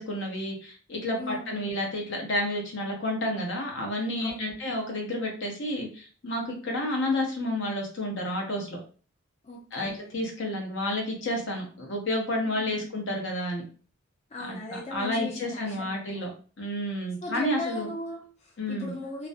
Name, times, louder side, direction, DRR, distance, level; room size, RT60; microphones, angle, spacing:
voice 1, 0.0-8.8 9.7-13.6 14.4-16.3 16.6-17.9 18.6-18.9, left 1 dB, 65° left, 1 dB, 0.7 m, -30 dB
voice 2, 1.2-1.6 4.2-4.6 9.4-10.1 12.5-12.8 14.3-16.2 17.2-19.3, left 2 dB, 35° left, -3 dB, 0.5 m, -38 dB
2.5 x 2.1 x 2.5 m, 0.39 s
head